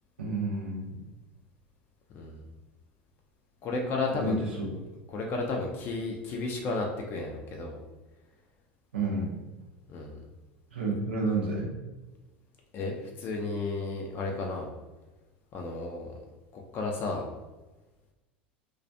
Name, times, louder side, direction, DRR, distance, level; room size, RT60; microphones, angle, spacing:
voice 1, 0.2-1.0 4.1-4.7 8.9-9.4 10.7-11.7, right 2 dB, 85° right, -3 dB, 0.5 m, -30 dB
voice 2, 3.6-4.4 4.8-7.8 9.9-10.2 12.7-14.7 15.5-16.2 16.5-17.2, left 3 dB, 40° left, 1 dB, 0.4 m, -33 dB
2.3 x 2.1 x 2.6 m, 1.1 s
hypercardioid pair, 85°, 6 cm